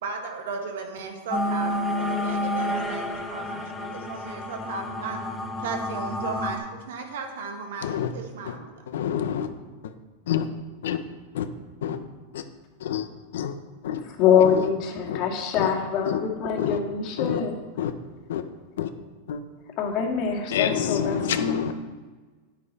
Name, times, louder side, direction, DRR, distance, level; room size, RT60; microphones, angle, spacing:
voice 1, 0.0-5.2 5.6-8.7, right 4 dB, 80° right, 3 dB, 1.9 m, -35 dB
sound 1, 1.3-6.6, left 1 dB, 5° left, 1.1 m, -29 dB
voice 2, 8.9-9.5 10.3-10.4 10.8-11.0 11.3-11.5 11.8-12.0 12.3-12.4 12.8-13.1 13.3-13.5 13.8-14.0 15.1-15.2 15.6-15.7 16.1-16.2 16.6-16.8 17.2-17.4 17.8-17.9 18.3-18.4 18.8-18.9 19.3-19.4 20.5-21.7, left 9 dB, 85° left, 9 dB, 0.9 m, -27 dB
voice 3, 14.0-17.6 19.8-21.6, left 7 dB, 45° left, 1 dB, 1.9 m, -24 dB
10.0 x 8.6 x 4.2 m, 1.3 s
supercardioid pair, 135°, 0 cm